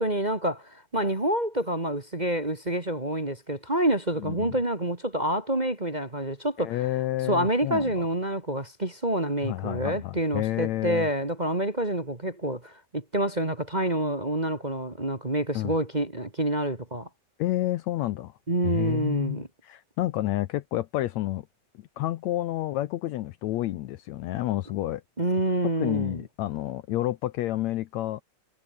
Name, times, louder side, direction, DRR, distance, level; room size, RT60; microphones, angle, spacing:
voice 1, 0.0-6.8 7.3-17.1 18.5-19.5 25.2-26.2, right 1 dB, 20° right, 1.2 m, -27 dB
voice 2, 4.2-4.6 6.6-7.9 9.4-11.1 15.6-15.7 17.4-18.3 18.6-21.4 22.0-25.0 25.8-28.2, left 15 dB, 75° left, 1.7 m, -29 dB
omnidirectional pair, 3.8 m